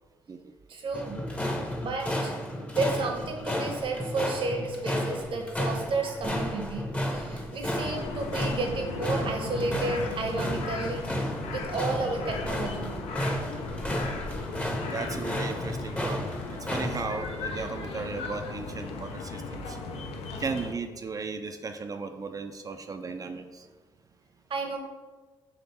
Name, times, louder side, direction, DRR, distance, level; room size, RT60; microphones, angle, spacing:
voice 1, 0.7-1.2 1.8-2.3 2.7-11.1 11.5-12.9 24.5-24.8, right 3 dB, 60° right, 2 dB, 0.8 m, -32 dB
sound 1, 0.9-17.0, left 1 dB, 15° left, 0.7 m, -33 dB
sound 2, 7.7-20.7, left 3 dB, 75° left, 0.5 m, -37 dB
voice 2, 14.9-16.3 16.6-19.8 20.4-23.7, right 4 dB, 35° right, 6 dB, 0.4 m, -36 dB
3.6 x 3.2 x 4.1 m, 1.4 s
supercardioid pair, 55°, 10 cm